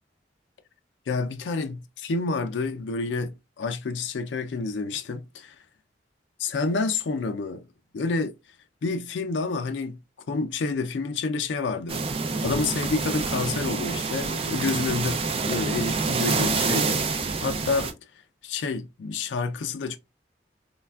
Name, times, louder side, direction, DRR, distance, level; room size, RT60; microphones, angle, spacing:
voice 1, 1.1-5.5 6.4-7.6 7.9-8.3 8.8-10.0 10.3-12.0 12.4-17.9 18.4-20.0, left 4 dB, 75° left, 0.4 m, -29 dB
sound 1, 11.9-17.9, right 4 dB, 30° right, 0.4 m, -27 dB
3.2 x 2.2 x 2.3 m
head